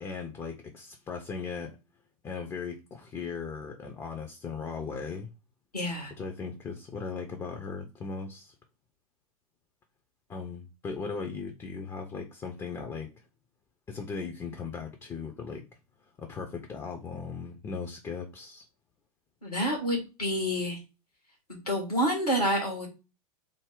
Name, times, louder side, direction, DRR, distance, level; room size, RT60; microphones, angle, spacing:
voice 1, 0.0-1.7 2.2-5.3 6.2-8.5 10.3-13.1 13.9-15.7 16.2-18.6, left 5 dB, 15° left, 0.6 m, -38 dB
voice 2, 5.7-6.1 19.4-20.8 21.7-22.9, equal, 90° left, 1.6 m, -28 dB
3.3 x 2.1 x 3.7 m
figure-of-eight pair, 95°, 19 cm